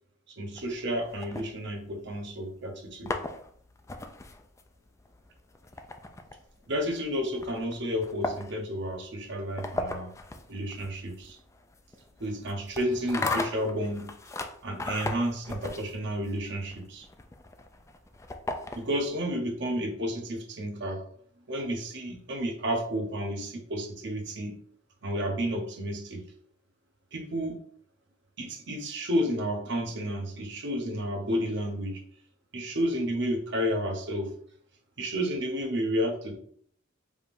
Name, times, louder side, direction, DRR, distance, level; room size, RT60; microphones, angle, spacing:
voice 1, 0.3-3.2 6.7-10.1 10.5-11.4 12.2-14.1 14.6-17.1 18.7-21.0 21.5-24.6 25.0-26.2 27.1-27.6 28.4-32.0 32.5-34.3 35.0-36.4, equal, 65° right, 2 dB, 1.0 m, -31 dB
sound 1, 0.6-2.2 2.8-19.2, left 2 dB, 15° left, 0.3 m, -38 dB
4.9 x 3.6 x 2.6 m, 0.62 s
head